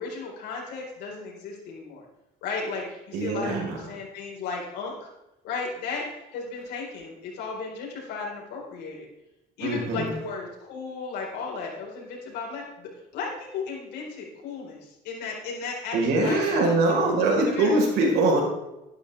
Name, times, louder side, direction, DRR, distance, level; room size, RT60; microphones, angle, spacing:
voice 1, 0.0-2.0 2.4-5.1 5.4-9.1 9.6-16.7 17.4-17.7, left 4 dB, 85° left, -2 dB, 4.5 m, -35 dB
voice 2, 3.1-3.8 9.6-10.1 15.9-18.4, right 2 dB, 85° right, 0 dB, 4.4 m, -23 dB
13.5 x 11.5 x 3.4 m, 0.92 s
cardioid pair, 110°, 17 cm